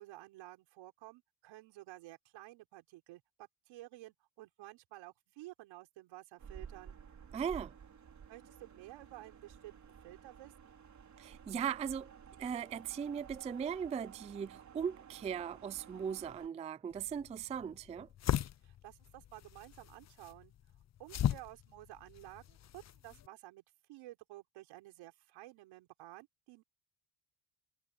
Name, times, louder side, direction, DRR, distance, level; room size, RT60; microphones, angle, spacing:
voice 1, 0.0-7.0 8.3-10.5 18.6-20.5 21.0-23.6 23.9-26.6, right 17 dB, 80° right, 5.0 m, -53 dB
sound 1, 6.4-16.5, right 7 dB, 40° right, 4.4 m, -54 dB
voice 2, 7.3-7.7 11.2-12.1 12.4-18.1, right 7 dB, 15° right, 0.3 m, -38 dB
sound 2, 16.9-23.3, left 11 dB, 35° left, 0.7 m, -39 dB
cardioid pair, 105°, 46 cm